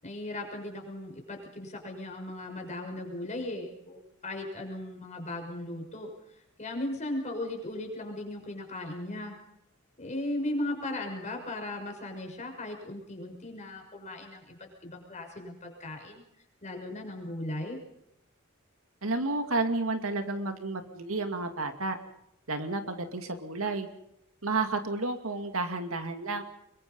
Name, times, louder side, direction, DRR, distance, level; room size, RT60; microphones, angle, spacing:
voice 1, 0.0-9.4 10.0-16.2 16.6-17.8, left 1 dB, 35° left, 3 dB, 6.2 m, -37 dB
voice 2, 19.0-22.0 22.5-23.9 24.4-26.4, right 3 dB, 80° right, 7 dB, 2.4 m, -31 dB
24.5 x 22.5 x 5.6 m, 0.82 s
head